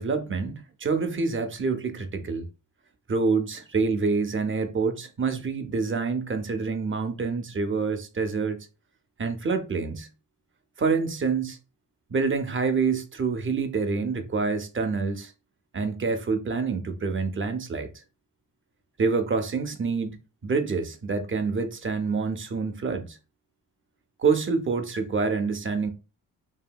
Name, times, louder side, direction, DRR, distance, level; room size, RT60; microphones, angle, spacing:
voice 1, 0.0-2.4 3.1-8.7 9.2-10.1 10.8-11.6 12.1-15.3 15.7-17.9 19.0-23.2 24.2-25.9, right 4 dB, 30° right, 0.6 m, -27 dB
2.7 x 2.7 x 2.2 m
cardioid pair, 65°, 41 cm